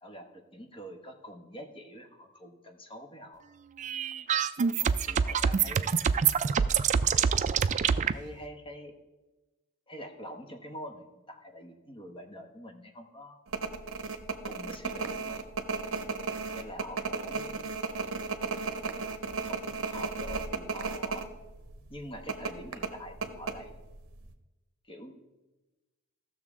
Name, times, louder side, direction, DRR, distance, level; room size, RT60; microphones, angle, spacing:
voice 1, 0.0-3.5 4.8-6.1 8.1-8.9 9.9-13.4 14.4-15.5 16.5-17.9 19.4-21.3 21.9-23.8 24.8-25.2, equal, 25° left, 5 dB, 1.0 m, -45 dB
sound 1, 3.8-8.1, right 7 dB, 35° right, 0.3 m, -26 dB
sound 2, 13.5-21.3 21.6-21.7 22.3-24.0 24.2-24.3, right 4 dB, 65° right, 0.8 m, -34 dB
15.5 x 6.5 x 3.6 m, 1.1 s
head